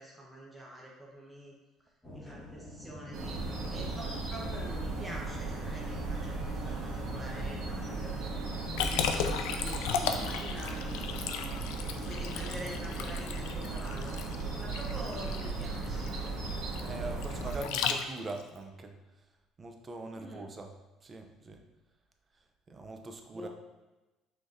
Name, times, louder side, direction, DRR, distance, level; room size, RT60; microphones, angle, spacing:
voice 1, 0.0-1.5 2.1-3.4 3.7-8.3 8.9-11.1 12.0-14.1 14.6-16.4 17.5-17.6 20.2-20.4 23.3-23.5, right 1 dB, 5° right, -5 dB, 0.9 m, -46 dB
sound 1, 2.0-10.9, left 1 dB, 20° left, 1.3 m, -49 dB
sound 2, 3.1-17.6, right 3 dB, 75° right, 1.1 m, -36 dB
Liquid, 8.8-18.4, left 7 dB, 90° left, 0.4 m, -35 dB
voice 2, 16.8-18.9 19.6-20.7 21.0-21.6 22.7-23.5, right 2 dB, 25° right, 4 dB, 0.5 m, -42 dB
5.8 x 3.2 x 2.6 m, 1.1 s
cardioid pair, 120°, 0 cm